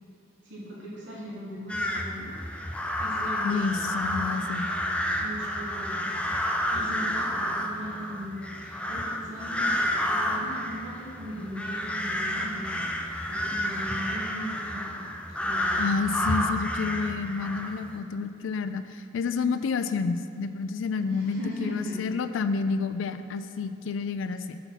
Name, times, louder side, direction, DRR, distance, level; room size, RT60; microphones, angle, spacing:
voice 1, 0.4-2.3 3.0-4.4 5.2-15.0 15.4-15.9 21.0-22.0, equal, 75° right, -6 dB, 1.4 m, -39 dB
sound 1, 1.7-18.0, equal, 5° left, 0.3 m, -30 dB
voice 2, 3.4-4.6 15.8-24.6, left 5 dB, 80° left, 11 dB, 0.3 m, -29 dB
5.6 x 4.0 x 5.9 m, 2.5 s
head